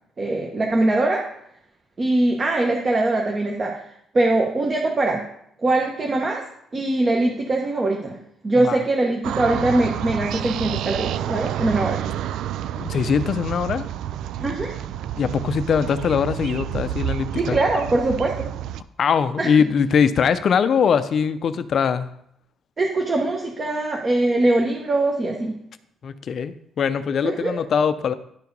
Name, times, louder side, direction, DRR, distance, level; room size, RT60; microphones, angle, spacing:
voice 1, 0.2-1.3 2.0-3.8 4.1-5.2 5.6-6.4 6.7-8.2 8.4-12.0 14.4-14.7 17.4-18.5 19.4-19.5 22.8-25.5 27.2-27.5, right 2 dB, 25° right, 0 dB, 1.1 m, -22 dB
sound 1, 9.2-18.8, right 11 dB, 75° right, 0.3 m, -29 dB
voice 2, 12.8-13.9 15.2-17.6 19.0-22.1 26.0-28.1, left 6 dB, 45° left, 12 dB, 0.6 m, -21 dB
10.5 x 4.7 x 5.3 m, 0.72 s
cardioid pair, 145°, 0 cm